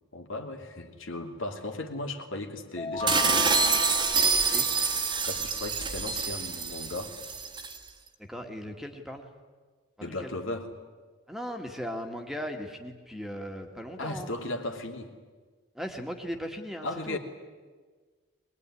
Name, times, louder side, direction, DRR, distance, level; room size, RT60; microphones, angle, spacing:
voice 1, 0.1-3.5 5.3-7.2 10.0-10.7 14.0-15.1 16.8-17.2, left 2 dB, 80° left, 3 dB, 2.8 m, -36 dB
sound 1, 2.8-5.5, left 1 dB, 25° left, 2.0 m, -35 dB
sound 2, 3.1-7.8, right 5 dB, 20° right, 1.6 m, -26 dB
voice 2, 8.3-9.3 10.0-10.4 11.3-14.3 15.7-17.2, equal, ahead, 3 dB, 1.8 m, -38 dB
22.5 x 21.0 x 9.9 m, 1.4 s
head